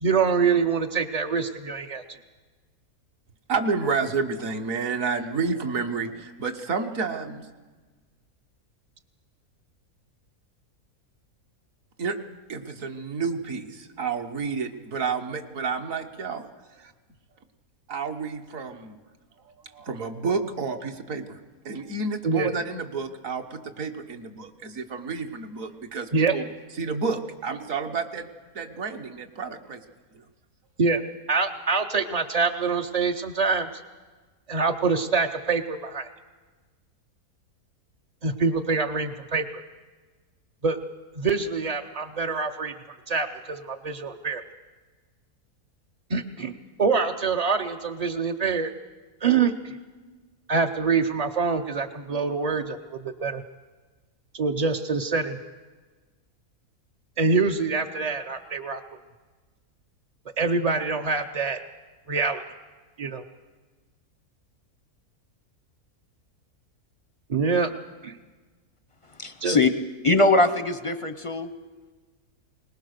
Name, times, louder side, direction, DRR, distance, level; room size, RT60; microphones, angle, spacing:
voice 1, 0.0-2.2 22.2-22.5 26.1-26.3 30.8-31.0 31.3-33.8 34.5-36.1 38.2-39.6 40.6-40.8 41.2-42.7 43.1-44.4 46.1-46.5 46.8-48.7 49.2-49.8 50.5-53.4 54.3-55.4 57.2-58.8 60.4-61.6 62.1-62.4 63.0-63.2 67.3-67.7 68.0-68.2 69.4-69.6, right 4 dB, 45° right, 4 dB, 0.5 m, -25 dB
voice 2, 3.5-7.5 12.0-12.2 12.5-16.5 16.8-16.9 17.9-19.0 19.7-21.4 21.6-26.4 26.8-28.3 28.5-29.8, right 4 dB, 60° right, 5 dB, 1.6 m, -30 dB
voice 3, 69.2-69.7 70.0-71.5, left 2 dB, 35° left, 10 dB, 0.5 m, -21 dB
21.5 x 19.5 x 6.6 m, 1.3 s
omnidirectional pair, 1.6 m